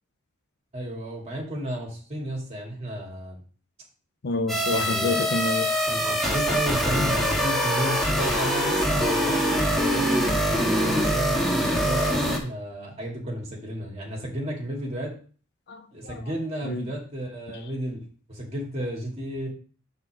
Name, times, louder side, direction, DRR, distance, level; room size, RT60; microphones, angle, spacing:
voice 1, 0.7-3.4 4.8-5.2 5.9-15.1 15.9-18.0 18.3-19.5, right 1 dB, 30° right, 2.4 m, -33 dB
voice 2, 4.2-5.7 15.7-16.2 16.6-16.9, left 2 dB, 55° left, 0.6 m, -28 dB
sound 1, 4.5-12.4, equal, ahead, 1.7 m, -24 dB
5.7 x 4.2 x 6.2 m
head